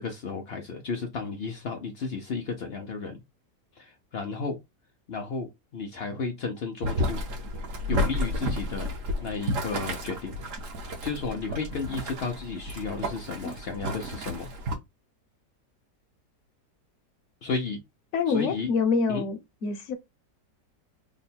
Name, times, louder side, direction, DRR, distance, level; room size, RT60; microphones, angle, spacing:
voice 1, 0.0-3.2 3.8-4.6 5.1-7.2 7.9-8.9 9.2-10.3 11.0-14.5 17.4-17.8 18.3-18.7 19.1-19.3, left 4 dB, 90° left, 0.5 m, -33 dB
Boiling, 6.8-14.7, equal, 55° right, 1.1 m, -31 dB
voice 2, 18.1-19.9, left 5 dB, 55° left, 1.0 m, -26 dB
3.6 x 2.2 x 4.1 m
omnidirectional pair, 1.9 m